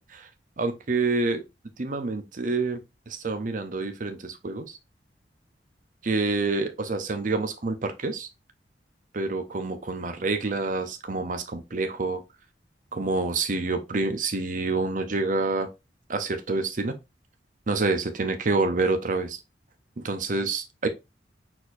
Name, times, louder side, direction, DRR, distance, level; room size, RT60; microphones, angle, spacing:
voice 1, 0.6-1.4 1.8-2.8 3.1-4.8 6.0-8.3 9.1-12.2 12.9-15.7 16.1-16.9 17.7-19.4 20.0-20.9, right 3 dB, 50° right, 0.7 m, -27 dB
4.3 x 4.3 x 2.6 m
head